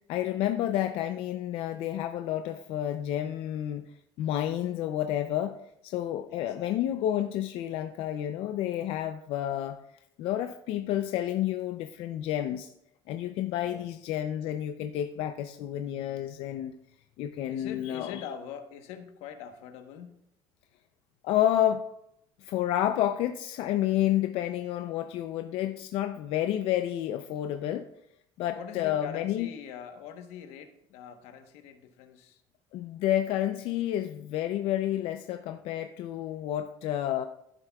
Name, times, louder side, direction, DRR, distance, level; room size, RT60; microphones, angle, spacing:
voice 1, 0.1-9.8 10.2-12.7 13.1-16.7 17.2-18.2 21.2-21.8 22.4-27.9 28.4-29.5 32.7-37.3, left 12 dB, 60° left, 7 dB, 0.5 m, -30 dB
voice 2, 6.3-7.1 13.6-14.1 17.5-20.2 28.5-32.4, left 8 dB, 80° left, 8 dB, 1.1 m, -44 dB
14.5 x 7.7 x 2.3 m, 0.79 s
cardioid pair, 150°, 11 cm